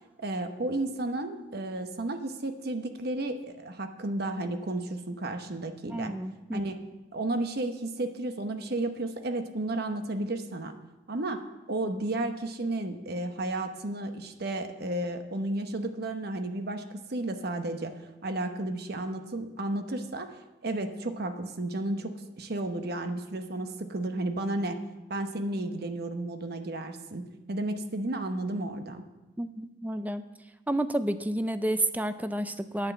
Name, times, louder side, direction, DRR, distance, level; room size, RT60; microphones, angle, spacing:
voice 1, 0.2-6.1 6.5-6.8 7.1-10.7 11.1-11.4 11.7-20.3 20.6-24.8 25.1-29.0, right 2 dB, 60° right, 7 dB, 0.9 m, -33 dB
voice 2, 5.9-6.6 29.4-30.2 30.7-32.9, right 1 dB, 10° right, 11 dB, 0.5 m, -30 dB
9.4 x 9.0 x 7.0 m, 1.1 s
head